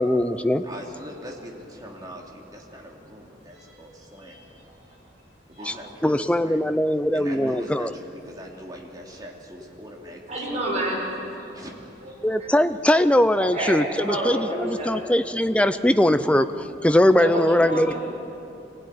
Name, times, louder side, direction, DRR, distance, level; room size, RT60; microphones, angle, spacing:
voice 1, 0.0-0.7 5.7-5.8 6.0-7.9 12.2-17.9, left 1 dB, 5° left, 11 dB, 0.5 m, -21 dB
voice 2, 0.6-4.4 5.5-6.6 7.1-10.7 11.4-12.2, equal, 20° right, 0 dB, 2.7 m, -42 dB
voice 3, 4.2-5.0 5.5-5.8 7.4-7.5 10.3-11.6 12.0-12.5 13.4-15.0 17.2-18.0, right 1 dB, 35° right, -4 dB, 6.3 m, -30 dB
23.0 x 16.0 x 9.8 m, 2.9 s
head